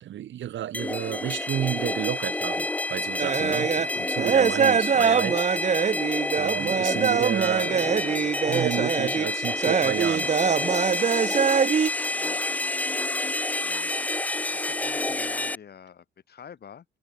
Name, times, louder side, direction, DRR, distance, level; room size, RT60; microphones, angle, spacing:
voice 1, 0.0-5.4 6.4-7.9 8.5-10.3, right 12 dB, 70° right, 1.9 m, -31 dB
sound 1, 0.7-15.6, left 2 dB, 10° left, 0.3 m, -29 dB
sound 2, 3.2-11.9, right 7 dB, 35° right, 0.7 m, -24 dB
voice 2, 7.6-8.4 12.2-12.4 13.6-13.9 14.5-16.9, left 8 dB, 55° left, 4.6 m, -45 dB
cardioid pair, 90°, 20 cm